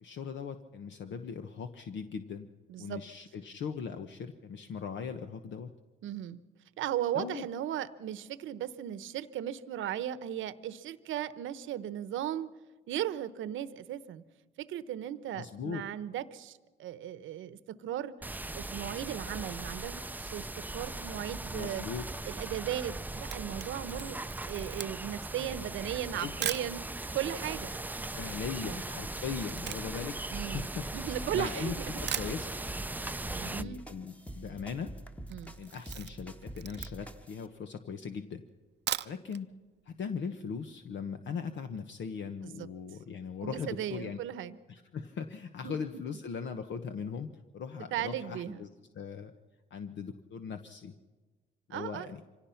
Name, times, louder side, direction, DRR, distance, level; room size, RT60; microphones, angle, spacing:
voice 1, 0.0-2.5 2.8-5.7 7.1-7.5 15.3-15.8 21.5-22.1 26.2-26.5 28.1-32.5 33.4-34.9 35.6-38.4 39.0-39.5 39.9-44.2 44.7-48.7 48.9-49.3 49.7-50.9 51.7-52.2, left 6 dB, 70° left, 7 dB, 1.2 m, -39 dB
voice 2, 2.7-3.0 6.0-6.4 6.8-12.5 12.9-14.2 14.6-18.1 18.5-20.5 20.7-21.8 22.3-24.2 24.4-26.9 27.1-28.0 28.6-28.8 30.3-32.1 33.3-33.8 35.3-35.5 42.4-42.7 43.4-44.6 45.6-45.8 47.9-48.6 51.7-52.1, right 11 dB, 80° right, 15 dB, 1.0 m, -37 dB
sound 1, 18.2-33.6, right 2 dB, 10° right, 0.5 m, -39 dB
Camera, 23.1-26.7 27.4-27.5 27.7-31.4 31.8-31.9 32.1-32.9 33.2-33.3 33.6-33.7 33.9-34.3 34.6-34.9 35.2-37.2 37.7-37.8 38.6-39.4 39.8-39.9 40.2-40.3, right 11 dB, 60° right, 0.6 m, -40 dB
sound 2, 31.1-37.4, right 1 dB, 5° left, 1.3 m, -46 dB
25.5 x 17.5 x 5.8 m, 1.3 s
cardioid pair, 90°, 20 cm